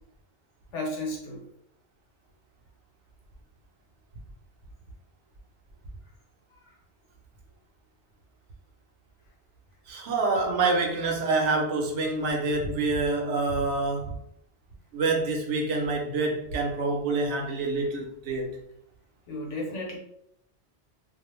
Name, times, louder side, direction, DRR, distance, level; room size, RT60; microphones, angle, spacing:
voice 1, 0.7-1.4 19.3-20.0, left 1 dB, 85° left, 1.1 m, -33 dB
voice 2, 9.9-14.2 14.9-18.6, right 3 dB, 85° right, 0.9 m, -27 dB
2.4 x 2.0 x 3.0 m
omnidirectional pair, 1.2 m